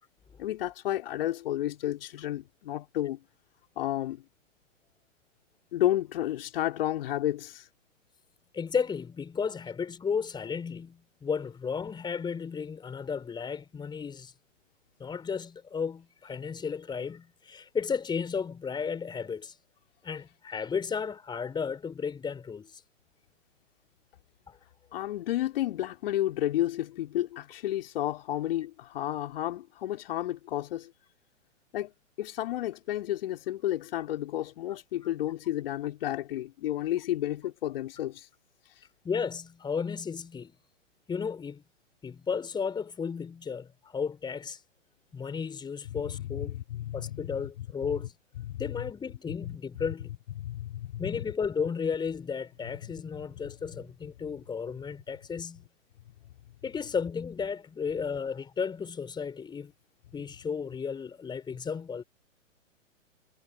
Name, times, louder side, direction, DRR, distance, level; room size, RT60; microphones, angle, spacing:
voice 1, 0.4-3.2 3.8-4.2 5.7-7.7 24.9-30.9 31.7-31.9 32.2-38.3 38.6-38.7 45.9-47.3 48.4-48.7 49.4-49.5 50.4-51.0, left 13 dB, 45° left, 3.4 m, -31 dB
voice 2, 8.5-14.3 15.0-19.5 20.0-22.8 24.5-24.6 39.0-40.5 41.1-41.6 42.0-44.6 45.1-46.6 46.9-48.1 48.6-50.2 51.0-55.7 56.6-59.7 60.1-62.0, left 6 dB, 10° left, 4.2 m, -34 dB
figure-of-eight pair, 115°, 38 cm